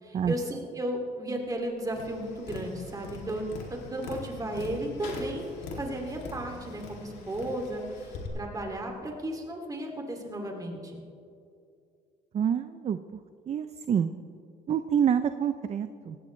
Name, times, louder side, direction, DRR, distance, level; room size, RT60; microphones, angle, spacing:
voice 1, 0.0-5.4 5.8-11.0, right 1 dB, 20° right, 2 dB, 2.5 m, -34 dB
Tap, 1.9-8.3, left 3 dB, 85° left, 2.6 m, -42 dB
voice 2, 12.3-13.0 13.5-14.1 14.7-16.2, right 8 dB, 40° right, 11 dB, 0.5 m, -27 dB
18.5 x 16.0 x 3.2 m, 2.5 s
cardioid pair, 110°, 17 cm